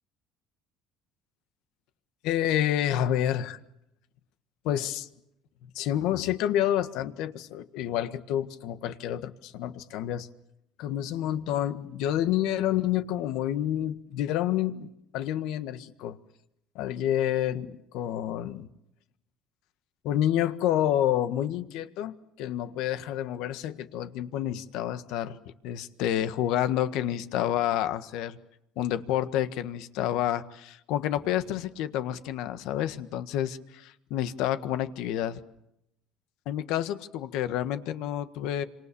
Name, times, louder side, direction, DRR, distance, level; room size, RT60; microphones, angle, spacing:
voice 1, 2.2-3.6 4.6-5.1 5.7-10.3 10.8-16.2 16.7-18.7 20.0-28.4 28.7-35.4 36.4-38.6, left 11 dB, 80° left, 11 dB, 1.6 m, -29 dB
28.0 x 26.5 x 7.0 m, 0.81 s
cardioid pair, 115°, 0 cm